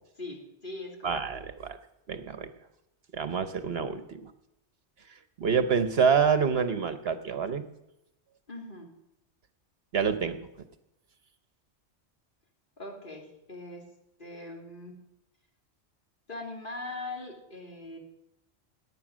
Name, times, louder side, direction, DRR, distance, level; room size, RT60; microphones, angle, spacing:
voice 1, 0.2-1.2 8.5-8.9 12.8-13.8 14.2-14.9 16.3-18.0, left 2 dB, 45° left, 0 dB, 3.0 m, -41 dB
voice 2, 1.0-1.8 2.1-2.5 3.1-4.3 5.4-7.6 9.9-10.5, right 6 dB, 65° right, 10 dB, 1.1 m, -27 dB
18.0 x 9.9 x 6.1 m, 0.87 s
omnidirectional pair, 1.2 m